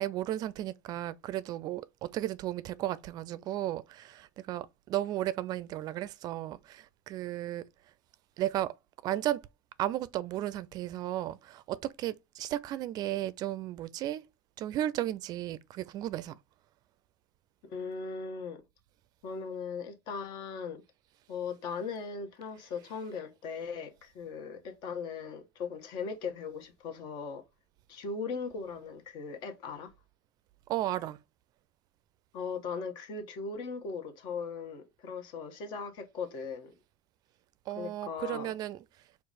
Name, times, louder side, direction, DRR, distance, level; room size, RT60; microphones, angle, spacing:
voice 1, 0.0-7.6 8.4-8.7 9.0-9.4 9.8-14.2 14.6-16.4 30.7-31.2 37.7-38.8, right 13 dB, 50° right, 0.4 m, -34 dB
voice 2, 17.6-18.6 19.2-20.8 21.3-27.4 27.9-29.9 32.3-36.7 37.8-38.6, left 5 dB, 60° left, 1.2 m, -38 dB
4.7 x 2.4 x 4.1 m
hypercardioid pair, 90°, 9 cm